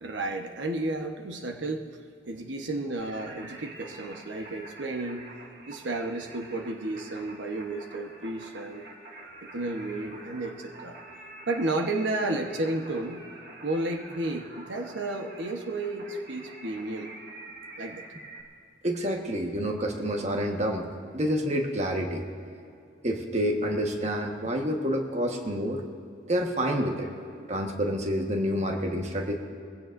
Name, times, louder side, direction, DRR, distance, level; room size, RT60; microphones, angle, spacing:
voice 1, 0.0-1.9 2.3-5.3 5.7-8.8 9.4-11.0 11.5-13.2 13.6-17.1 17.8-18.0, right 2 dB, 85° right, 4 dB, 1.1 m, -32 dB
Singing, 3.0-18.4, right 2 dB, 55° right, 2.1 m, -46 dB
voice 2, 18.8-20.9 21.1-22.2 23.0-25.8 26.3-27.1 27.5-29.4, equal, 40° right, 2 dB, 1.3 m, -28 dB
22.0 x 16.0 x 2.6 m, 2.4 s
head